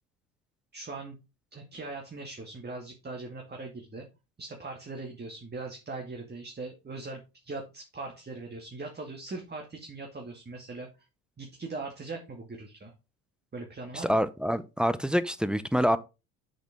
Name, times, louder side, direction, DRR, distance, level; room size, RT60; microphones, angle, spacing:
voice 1, 0.7-1.2 1.5-4.1 4.4-10.9 11.4-12.9 13.5-14.2, right 3 dB, 20° right, 2.3 m, -40 dB
voice 2, 14.0-16.0, equal, ahead, 0.6 m, -26 dB
8.1 x 6.6 x 3.6 m
hypercardioid pair, 65°, 46 cm